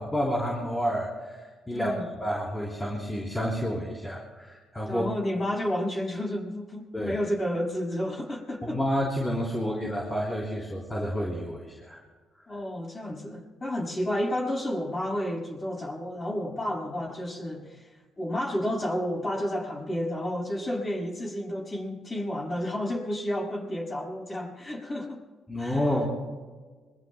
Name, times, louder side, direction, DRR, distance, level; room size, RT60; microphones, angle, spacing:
voice 1, 0.0-1.9 2.2-5.0 6.9-7.2 8.6-12.0 25.5-26.1, equal, 10° left, -4 dB, 3.5 m, -29 dB
voice 2, 1.7-2.0 4.9-8.8 12.5-17.9 18.2-25.2 25.6-25.9, left 1 dB, 30° left, -1 dB, 6.0 m, -31 dB
26.0 x 23.0 x 2.2 m, 1.4 s
cardioid pair, 90°, 0 cm